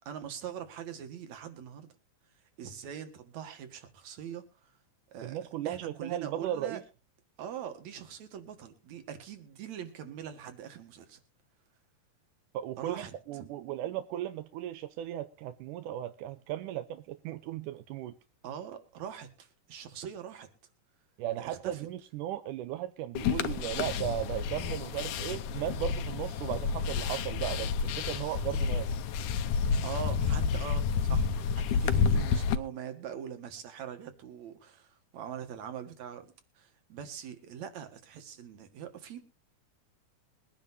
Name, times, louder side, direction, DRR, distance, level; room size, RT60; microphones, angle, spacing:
voice 1, 0.1-1.9 2.6-4.4 5.1-5.4 5.6-6.8 7.4-11.2 12.8-13.5 18.4-20.5 21.4-21.8 29.8-31.3 31.5-39.2, right 8 dB, 65° right, 3.0 m, -42 dB
voice 2, 5.2-6.8 12.5-18.1 21.2-28.9, right 12 dB, 85° right, 2.3 m, -36 dB
sound 1, 23.2-32.6, left 6 dB, 80° left, 2.4 m, -30 dB
22.5 x 10.5 x 2.7 m
omnidirectional pair, 3.5 m